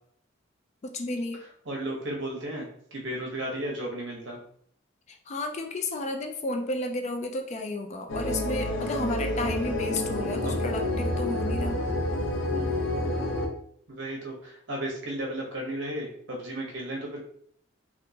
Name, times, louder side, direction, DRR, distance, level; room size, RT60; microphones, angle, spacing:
voice 1, 0.8-1.4 5.1-11.8, left 2 dB, 35° left, 5 dB, 0.4 m, -32 dB
voice 2, 1.7-4.4 10.4-10.6 12.5-12.8 13.9-17.2, right 1 dB, 60° right, -1 dB, 1.0 m, -34 dB
sound 1, 8.1-13.5, left 1 dB, 75° left, 0.7 m, -29 dB
3.6 x 2.4 x 2.8 m, 0.64 s
head